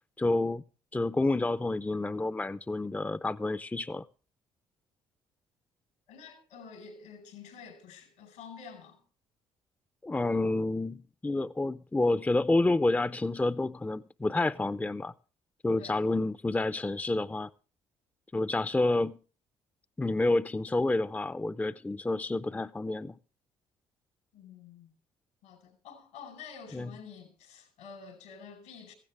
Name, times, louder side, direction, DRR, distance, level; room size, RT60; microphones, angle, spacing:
voice 1, 0.2-0.6 0.9-4.0 10.0-15.1 15.6-17.5 18.3-19.2 20.0-23.1 26.7-26.9, left 2 dB, 10° left, 0.6 m, -29 dB
voice 2, 6.1-9.0 15.8-16.0 24.3-24.9 25.4-28.9, left 6 dB, 85° left, 4.9 m, -48 dB
16.5 x 15.0 x 3.4 m
hypercardioid pair, 60°, 13 cm